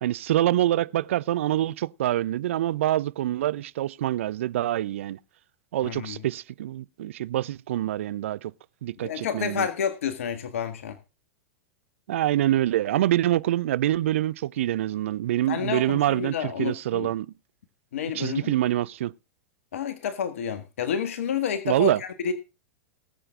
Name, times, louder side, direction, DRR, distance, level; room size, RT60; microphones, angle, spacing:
voice 1, 0.0-5.2 5.7-8.5 8.8-9.7 12.1-17.3 18.1-19.1 21.7-22.0, right 13 dB, 60° right, 0.5 m, -25 dB
voice 2, 5.8-6.2 9.0-11.0 15.5-17.1 17.9-18.5 19.7-22.3, left 8 dB, 65° left, 1.7 m, -30 dB
19.0 x 7.9 x 3.7 m
figure-of-eight pair, 90°, 8 cm